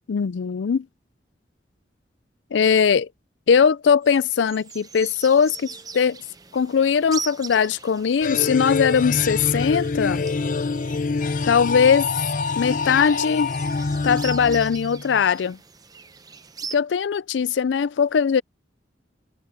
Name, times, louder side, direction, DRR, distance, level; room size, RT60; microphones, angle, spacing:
voice 1, 0.1-0.8 2.5-3.1 3.5-5.7 5.9-6.2 6.5-10.2 11.4-12.1 12.6-13.5 14.0-15.6 16.7-18.4, left 6 dB, 85° left, 0.4 m, -20 dB
sound 1, 4.0-16.8, right 6 dB, 20° right, 0.7 m, -41 dB
sound 2, 8.2-15.2, left 4 dB, 45° left, 0.6 m, -26 dB
head